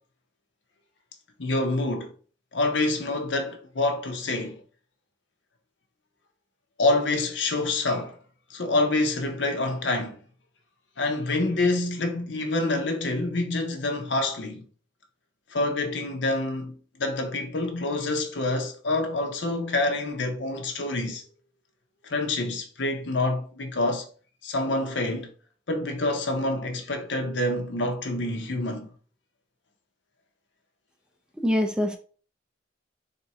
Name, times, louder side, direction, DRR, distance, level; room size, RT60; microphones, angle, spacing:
voice 1, 1.4-2.1 2.5-4.6 6.8-8.2 8.5-10.2 11.0-14.7 15.5-21.2 22.0-24.1 24.4-25.3 25.7-28.9, left 2 dB, 80° left, 0.8 m, -27 dB
voice 2, 31.4-32.0, left 1 dB, 5° right, 0.4 m, -24 dB
3.6 x 2.7 x 4.1 m
head